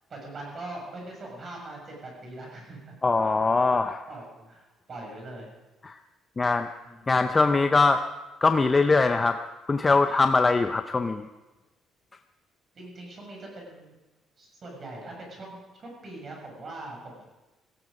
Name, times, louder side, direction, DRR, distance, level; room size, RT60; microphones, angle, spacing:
voice 1, 0.1-2.9 4.1-5.5 6.8-7.3 12.7-13.9 14.4-17.2, right 2 dB, 35° right, 0 dB, 6.7 m, -42 dB
voice 2, 3.0-4.0 5.9-6.0 6.4-6.7 7.1-8.0 8.4-9.4 9.7-11.3, left 3 dB, 20° left, 7 dB, 0.6 m, -22 dB
17.5 x 16.5 x 5.1 m, 1.1 s
cardioid pair, 145°, 0 cm